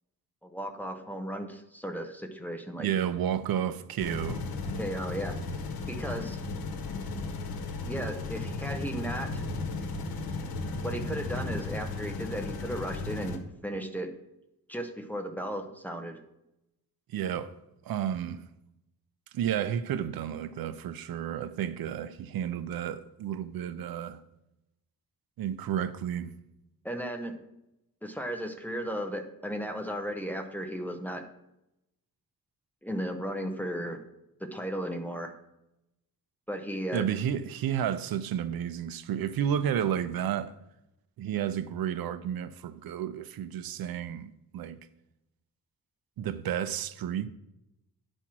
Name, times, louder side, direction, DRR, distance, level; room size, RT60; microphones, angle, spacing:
voice 1, 0.4-3.0 4.8-5.4 5.9-6.4 7.8-9.5 10.8-14.1 14.7-16.2 26.8-27.3 28.0-31.2 32.8-34.0 34.4-35.3 36.5-37.1, equal, 5° left, 0.6 m, -35 dB
voice 2, 2.8-4.4 17.1-17.6 17.8-18.4 19.3-24.2 25.4-26.3 36.9-40.5 41.2-44.8 46.2-47.3, right 9 dB, 75° right, 0.6 m, -31 dB
sound 1, 4.0-13.4, left 3 dB, 80° left, 1.1 m, -35 dB
9.9 x 4.4 x 6.0 m
wide cardioid pair, 175°, 36 cm